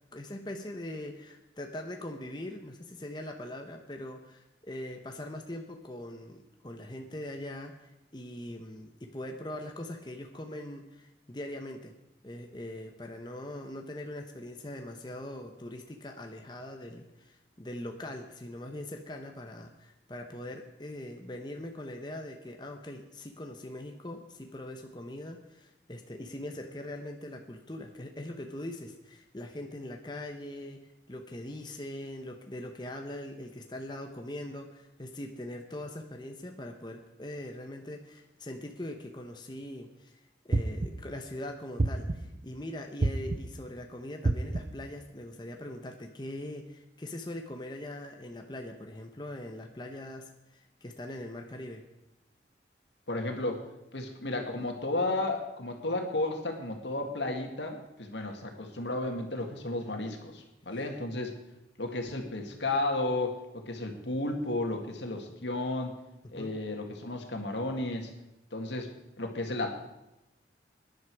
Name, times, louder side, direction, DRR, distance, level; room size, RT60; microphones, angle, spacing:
voice 1, 0.1-11.9 12.2-51.8 66.2-66.5, left 1 dB, 25° left, 3 dB, 0.9 m, -42 dB
sound 1, 40.5-41.2 41.8-42.4 43.0-43.7 44.2-44.9, right 2 dB, 40° right, 0.6 m, -29 dB
voice 2, 53.1-53.6 53.9-61.4 61.8-65.9 66.3-68.1 68.5-68.9 69.2-69.8, left 2 dB, 80° left, 3 dB, 2.1 m, -33 dB
18.5 x 10.5 x 4.8 m, 0.93 s
head